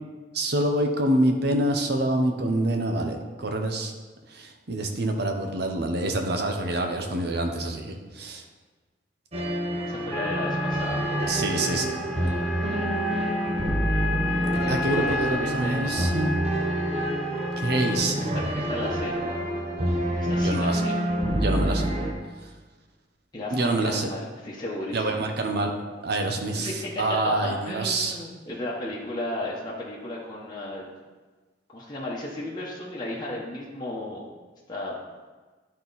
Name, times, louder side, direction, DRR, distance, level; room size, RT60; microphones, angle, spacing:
voice 1, 0.3-3.9 4.3-8.4 11.3-12.0 14.7-16.3 17.6-18.3 20.3-20.8 21.3-21.9 23.5-24.1 24.9-25.7 26.0-26.7 27.0-28.2, right 1 dB, 65° right, 4 dB, 0.9 m, -26 dB
sound 1, 9.3-22.1, right 1 dB, 35° right, 0.9 m, -27 dB
voice 2, 9.9-11.3 14.5-16.1 18.2-19.2 20.2-20.9 23.3-25.2 26.5-30.9 31.7-34.3 34.7-35.0, left 1 dB, 25° left, -6 dB, 1.0 m, -34 dB
sound 2, 10.1-17.9, left 3 dB, 5° left, 0.6 m, -34 dB
10.5 x 4.4 x 4.1 m, 1.3 s
head